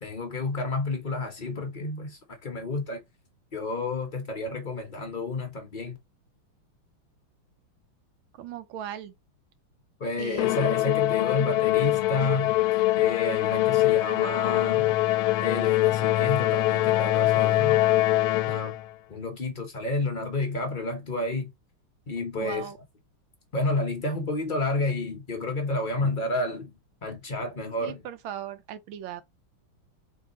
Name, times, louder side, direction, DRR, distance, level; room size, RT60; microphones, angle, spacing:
voice 1, 0.0-3.0 3.5-6.0 10.0-12.6 13.0-15.0 15.4-18.7 19.1-21.5 22.1-22.7 23.5-26.7 27.0-28.0, left 2 dB, 55° left, 0.5 m, -30 dB
voice 2, 8.4-9.1 10.2-10.6 22.4-22.8 26.0-26.1 27.8-29.2, right 10 dB, 75° right, 1.4 m, -38 dB
Musical instrument, 10.4-18.9, left 16 dB, 85° left, 1.4 m, -23 dB
3.8 x 3.4 x 4.0 m
omnidirectional pair, 2.3 m